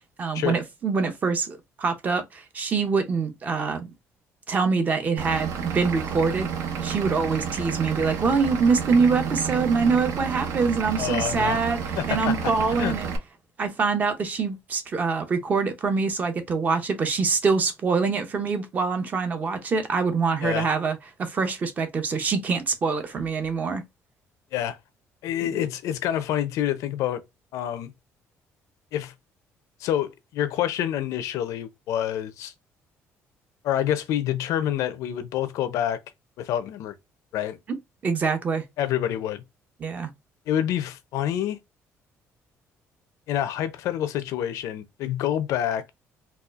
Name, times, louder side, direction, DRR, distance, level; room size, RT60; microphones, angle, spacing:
voice 1, 0.2-3.9 4.5-6.5 6.8-13.1 13.6-23.8 25.4-25.6 37.7-37.8 38.0-38.6 39.8-40.1, right 4 dB, 30° right, 0.6 m, -25 dB
Vehicle / Engine, 5.2-13.2, right 7 dB, 70° right, 0.7 m, -30 dB
voice 2, 11.0-11.6 12.0-12.5 12.8-12.9 20.4-20.7 24.5-24.8 25.2-27.2 27.5-27.9 28.9-29.1 29.8-32.5 33.6-36.0 36.4-36.9 37.3-37.6 38.8-39.4 40.5-41.6 43.3-45.8, left 11 dB, 80° left, 0.5 m, -27 dB
4.1 x 2.4 x 2.4 m
cardioid pair, 160°, 5 cm